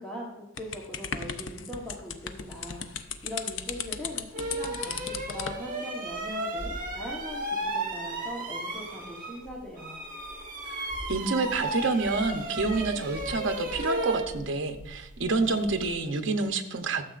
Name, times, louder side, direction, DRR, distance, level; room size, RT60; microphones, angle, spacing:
voice 1, 0.0-10.1, equal, 5° left, -5 dB, 1.0 m, -40 dB
sound 1, 0.6-5.6, left 7 dB, 65° left, 0.5 m, -36 dB
sound 2, 3.7-3.8 4.3-9.5 9.8-15.9, right 1 dB, 40° right, 1.5 m, -34 dB
voice 2, 10.7-17.0, right 3 dB, 65° right, 6 dB, 0.8 m, -28 dB
13.0 x 7.0 x 2.5 m, 0.96 s
head